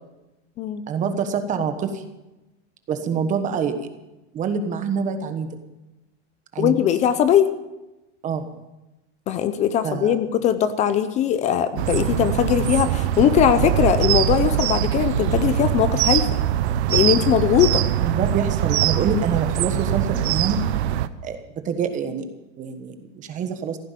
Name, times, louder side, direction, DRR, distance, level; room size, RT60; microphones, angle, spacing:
voice 1, 0.9-2.0 2.9-3.7 4.3-5.5 6.5-6.8 8.2-8.4 9.8-10.2 18.0-20.6 21.2-21.4 21.6-22.3 22.6-23.8, right 6 dB, 20° right, 8 dB, 1.3 m, -25 dB
voice 2, 6.6-7.5 9.3-16.3 16.9-17.8, left 10 dB, 20° left, 12 dB, 0.6 m, -20 dB
sound 1, 11.8-21.1, right 12 dB, 70° right, 1.0 m, -22 dB
15.5 x 9.8 x 9.1 m, 0.99 s
supercardioid pair, 165°, 34 cm